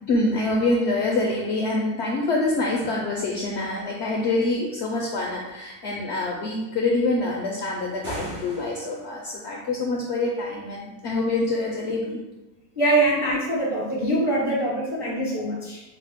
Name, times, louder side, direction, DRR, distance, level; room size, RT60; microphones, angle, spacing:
voice 1, 0.1-12.2, left 2 dB, 65° left, -2 dB, 0.7 m, -25 dB
sound 1, 7.9-9.2, equal, 70° right, 2.2 m, -37 dB
voice 2, 12.8-15.8, right 1 dB, 10° right, -5 dB, 0.5 m, -23 dB
4.8 x 2.0 x 3.5 m, 1.0 s
omnidirectional pair, 1.5 m